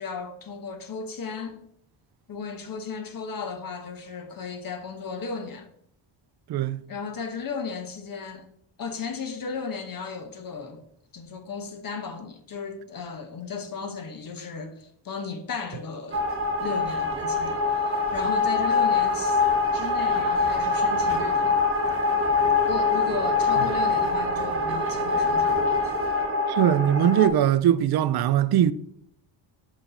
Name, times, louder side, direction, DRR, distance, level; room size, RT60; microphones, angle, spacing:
voice 1, 0.0-1.6 2.3-5.7 6.9-8.5 8.8-10.8 11.1-16.3 16.6-19.4 19.7-21.6 22.7-25.6, left 5 dB, 45° left, 1.1 m, -35 dB
voice 2, 6.5-6.8 26.5-28.7, right 10 dB, 55° right, 0.5 m, -21 dB
sound 1, 16.1-27.3, left 3 dB, 30° right, 1.1 m, -24 dB
6.2 x 5.2 x 4.9 m
cardioid pair, 130°, 47 cm